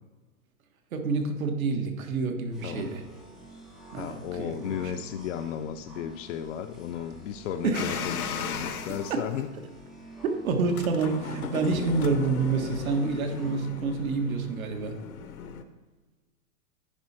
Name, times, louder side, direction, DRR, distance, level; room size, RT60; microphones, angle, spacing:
voice 1, 0.9-3.0 3.9-4.9 7.6-8.0 9.1-9.2 10.4-14.9, right 4 dB, 70° right, 5 dB, 1.6 m, -28 dB
sound 1, 2.5-13.6, right 2 dB, ahead, 0.3 m, -48 dB
voice 2, 4.0-9.5, left 9 dB, 60° left, 7 dB, 0.6 m, -34 dB
sound 2, 7.7-9.2 10.6-15.6, left 6 dB, 80° left, 1.0 m, -36 dB
10.0 x 4.9 x 4.3 m, 1.3 s
hypercardioid pair, 135°, 43 cm